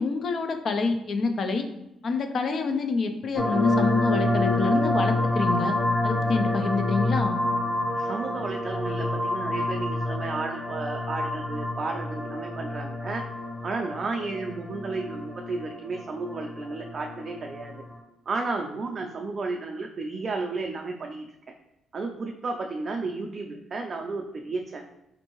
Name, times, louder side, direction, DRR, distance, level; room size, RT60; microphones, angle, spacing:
voice 1, 0.0-1.6 2.0-5.8 6.0-7.4, left 4 dB, 55° left, 6 dB, 0.5 m, -27 dB
sound 1, 3.4-17.9, left 2 dB, 15° left, 1.0 m, -28 dB
voice 2, 7.9-13.2 13.6-17.8 18.3-21.3 21.9-24.8, right 3 dB, 45° right, 2 dB, 0.4 m, -33 dB
4.4 x 2.6 x 3.0 m, 0.87 s
cardioid pair, 90°, 0 cm